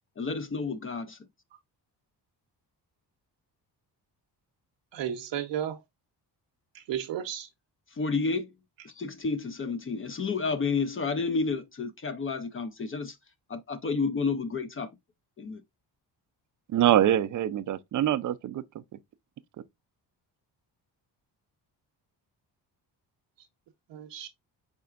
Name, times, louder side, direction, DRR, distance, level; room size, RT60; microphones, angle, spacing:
voice 1, 0.2-1.2 7.9-8.5 8.8-13.2 13.5-14.9 15.4-15.6, left 4 dB, 30° left, 0.5 m, -30 dB
voice 2, 4.9-5.8 6.9-7.5 23.9-24.3, right 10 dB, 80° right, 0.7 m, -33 dB
voice 3, 16.7-18.8, right 11 dB, 45° right, 0.4 m, -24 dB
4.7 x 4.3 x 2.3 m
cardioid pair, 110°, 43 cm